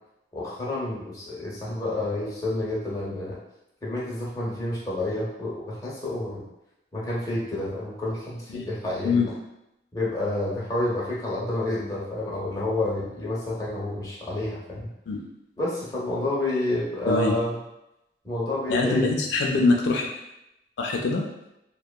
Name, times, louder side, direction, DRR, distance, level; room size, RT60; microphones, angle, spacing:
voice 1, 0.3-3.4 3.8-6.4 6.9-9.2 9.9-14.9 15.6-17.6 18.2-19.1, left 1 dB, 20° left, -7 dB, 0.6 m, -29 dB
voice 2, 17.1-17.4 18.7-20.1 20.8-21.3, left 3 dB, 80° left, 1 dB, 0.3 m, -23 dB
2.8 x 2.2 x 2.2 m, 0.88 s
head